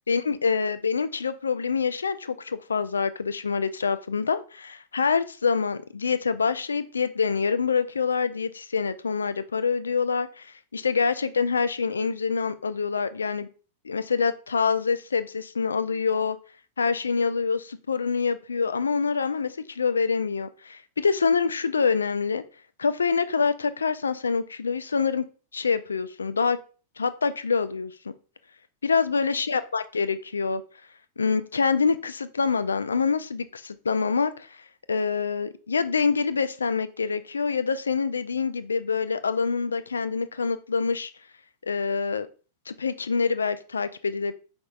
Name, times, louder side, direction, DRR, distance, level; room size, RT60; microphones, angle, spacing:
voice 1, 0.1-13.5 13.8-16.4 16.8-22.4 22.8-25.2 25.5-26.6 27.0-27.9 28.8-30.6 31.2-34.6 34.9-41.1 41.6-42.3 42.7-44.3, left 5 dB, 75° left, 13 dB, 0.3 m, -26 dB
5.0 x 3.4 x 2.4 m, 0.37 s
figure-of-eight pair, 90°, 0 cm